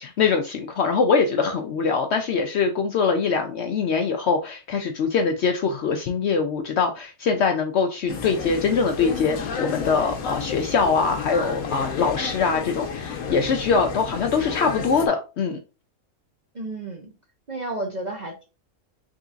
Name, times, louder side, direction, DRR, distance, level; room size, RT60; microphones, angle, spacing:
voice 1, 0.0-15.6, left 5 dB, 65° left, 0.7 m, -23 dB
sound 1, 8.1-15.1, left 6 dB, 80° left, 1.1 m, -31 dB
voice 2, 16.5-17.1 17.5-18.5, right 2 dB, 45° right, 0.6 m, -32 dB
3.8 x 3.4 x 2.5 m
omnidirectional pair, 1.5 m